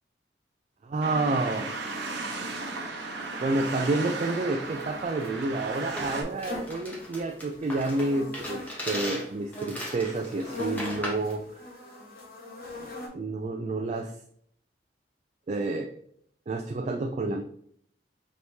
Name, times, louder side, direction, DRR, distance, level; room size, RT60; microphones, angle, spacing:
voice 1, 0.8-1.8 3.4-11.4 13.1-14.1 15.5-15.9 16.5-17.4, right 2 dB, 40° right, 4 dB, 0.3 m, -29 dB
sound 1, 1.0-6.2, right 3 dB, 80° right, 0.9 m, -35 dB
sound 2, 4.6-13.1, left 2 dB, 55° left, 1.2 m, -42 dB
sound 3, 6.0-11.3, equal, 10° left, 0.9 m, -38 dB
5.1 x 3.0 x 2.7 m, 0.66 s
head